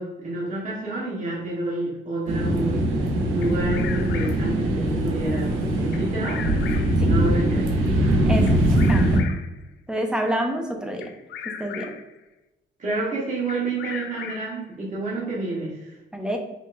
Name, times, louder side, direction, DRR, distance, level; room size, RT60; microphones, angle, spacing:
voice 1, 0.0-2.8 3.3-6.4 7.1-8.0 12.8-16.0, right 2 dB, 40° right, -6 dB, 1.4 m, -29 dB
sound 1, 2.3-9.2, right 1 dB, 85° right, 0.9 m, -22 dB
Bird vocalization bird call bird song, 3.4-4.6 5.9-7.0 8.5-9.6 11.0-12.1 13.5-14.6, left 8 dB, 65° left, 0.4 m, -38 dB
voice 2, 8.3-9.1 9.9-11.1 11.4-11.9 16.1-16.4, equal, 5° right, 3 dB, 0.8 m, -28 dB
5.6 x 2.8 x 2.6 m, 1.0 s
cardioid pair, 90°, 20 cm